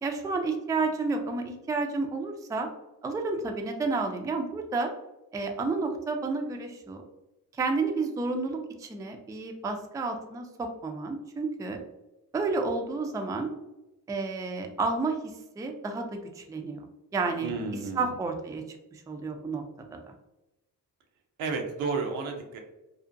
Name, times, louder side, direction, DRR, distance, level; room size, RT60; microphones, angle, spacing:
voice 1, 0.0-2.7 3.0-4.9 5.3-7.0 7.5-11.8 12.3-13.5 14.1-16.8 17.1-17.5 18.0-18.6 18.9-19.6 19.9-20.0, right 3 dB, 10° right, 4 dB, 0.3 m, -31 dB
voice 2, 17.4-18.1 21.4-22.6, right 4 dB, 80° right, 2 dB, 0.6 m, -32 dB
2.6 x 2.1 x 2.4 m, 0.96 s
supercardioid pair, 40°, 47 cm